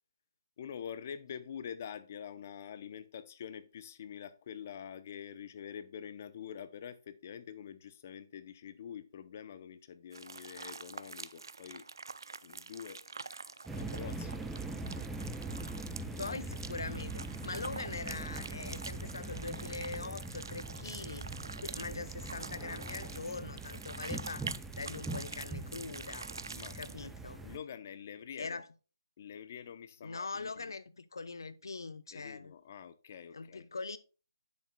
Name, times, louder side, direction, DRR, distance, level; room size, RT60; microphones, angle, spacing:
voice 1, 0.6-11.9 12.4-13.0 13.4-14.4 15.6-15.7 26.4-27.1 27.4-28.6 29.2-30.7 32.1-33.7, left 8 dB, 30° left, 0.7 m, -46 dB
sound 1, 10.1-27.1, right 4 dB, 70° right, 0.5 m, -46 dB
sound 2, 13.7-27.6, right 2 dB, 5° right, 0.4 m, -42 dB
voice 2, 16.0-21.3 21.6-26.3 26.8-27.4 28.4-28.7 30.0-32.5 33.3-34.0, left 4 dB, 70° left, 0.8 m, -42 dB
10.0 x 7.2 x 2.2 m
hypercardioid pair, 165°, 2 cm